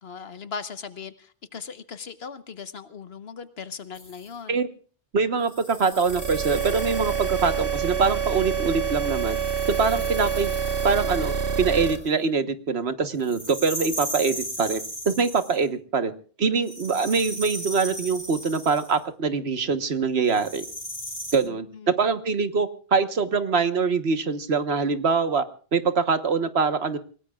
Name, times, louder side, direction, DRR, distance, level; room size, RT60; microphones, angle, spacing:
voice 1, 0.0-4.6 9.9-10.3 21.4-21.9, left 6 dB, 70° left, 11 dB, 1.4 m, -39 dB
sound 1, 3.9-4.3 5.4-7.7 8.9-12.1 13.2-15.6 16.6-19.0 20.3-21.4, equal, 40° left, 7.4 m, -37 dB
voice 2, 5.1-9.4 9.7-10.5 10.8-16.1 16.4-20.6 21.3-25.4 25.7-27.0, right 5 dB, 75° right, 10 dB, 1.5 m, -24 dB
sound 2, 6.1-12.0, right 7 dB, 60° right, 2.3 m, -27 dB
28.5 x 18.0 x 2.4 m, 0.41 s
omnidirectional pair, 1.1 m